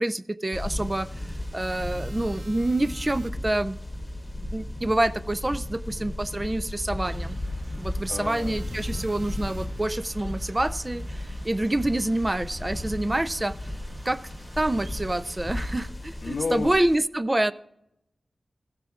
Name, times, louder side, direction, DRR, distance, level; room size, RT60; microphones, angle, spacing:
voice 1, 0.0-3.8 4.5-7.4 7.8-13.7 14.1-14.2 14.6-17.5, right 1 dB, 20° right, 15 dB, 0.3 m, -27 dB
sound 1, 0.5-17.0, left 1 dB, 15° left, 1.2 m, -35 dB
sound 2, 1.6-3.3 8.3-9.7, right 3 dB, 90° right, 0.7 m, -50 dB
sound 3, 7.0-15.8, right 1 dB, 60° right, 1.6 m, -50 dB
voice 2, 8.1-8.6 16.2-16.7, left 4 dB, 70° left, 9 dB, 0.5 m, -31 dB
15.0 x 12.0 x 2.4 m, 0.81 s
wide cardioid pair, 110°, 0 cm